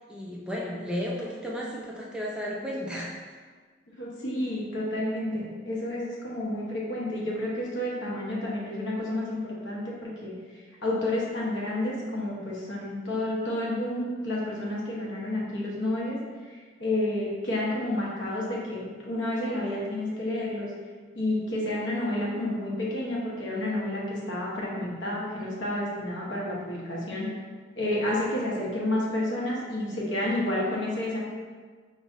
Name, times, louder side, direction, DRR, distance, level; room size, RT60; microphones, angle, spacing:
voice 1, 0.1-3.2, equal, 5° right, -4 dB, 0.5 m, -33 dB
voice 2, 4.0-10.3 10.8-16.2 16.8-20.7 21.1-27.3 27.8-31.2, left 1 dB, 90° left, -4 dB, 1.1 m, -30 dB
5.3 x 3.2 x 2.7 m, 1.5 s
head